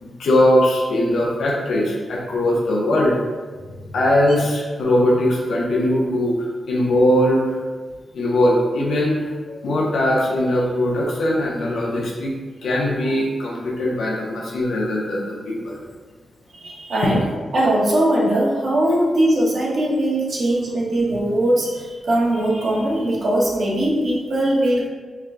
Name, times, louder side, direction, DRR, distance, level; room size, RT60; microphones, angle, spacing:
voice 1, 0.0-3.1 3.9-6.4 6.7-7.6 8.1-9.2 9.5-12.3 12.6-15.8, left 1 dB, 85° left, -4 dB, 0.8 m, -20 dB
voice 2, 16.5-17.3 17.5-24.9, right 1 dB, 65° right, -4 dB, 1.0 m, -20 dB
4.5 x 2.2 x 3.7 m, 1.4 s
cardioid pair, 90°, 0 cm